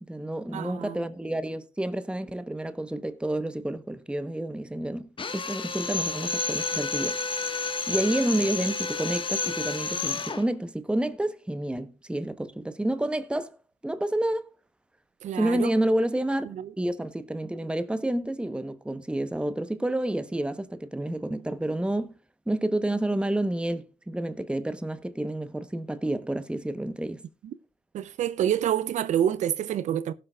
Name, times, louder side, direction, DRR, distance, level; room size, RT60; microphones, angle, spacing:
voice 1, 0.0-5.1 5.3-7.2 7.9-13.6 13.8-14.5 15.3-16.5 16.8-22.1 22.5-27.2, right 1 dB, 10° right, 1.0 m, -29 dB
voice 2, 0.5-1.0 15.2-15.7 16.5-16.7 27.9-30.1, right 10 dB, 75° right, 0.5 m, -27 dB
Drill, 5.2-10.5, left 4 dB, 45° left, 1.4 m, -30 dB
17.5 x 7.7 x 2.3 m
supercardioid pair, 50°, 12 cm